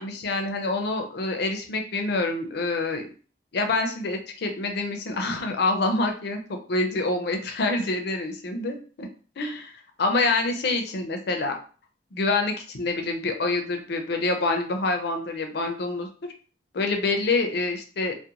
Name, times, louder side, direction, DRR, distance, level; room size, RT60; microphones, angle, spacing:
voice 1, 0.0-3.1 3.5-9.1 9.4-9.7 10.0-11.6 12.1-16.1 16.7-18.2, left 3 dB, 65° left, 4 dB, 0.5 m, -26 dB
2.4 x 2.1 x 2.8 m, 0.39 s
head